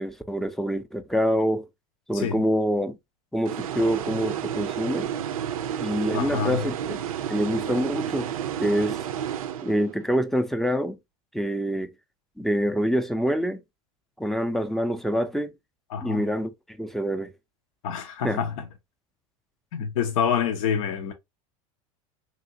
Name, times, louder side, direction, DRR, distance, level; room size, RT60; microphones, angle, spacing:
voice 1, 0.0-1.7 2.1-3.0 3.3-5.1 5.8-7.0 7.3-8.3 8.6-9.0 9.6-11.0 11.3-11.9 12.4-13.6 14.2-15.5 16.0-17.3 18.2-18.4, equal, ahead, 0.4 m, -26 dB
sound 1, 3.4-10.1, right 9 dB, 90° right, 0.4 m, -31 dB
voice 2, 6.1-6.6 15.9-16.2 17.8-18.7 19.7-21.1, left 7 dB, 75° left, 0.6 m, -27 dB
2.8 x 2.8 x 2.6 m
hypercardioid pair, 100°, 17 cm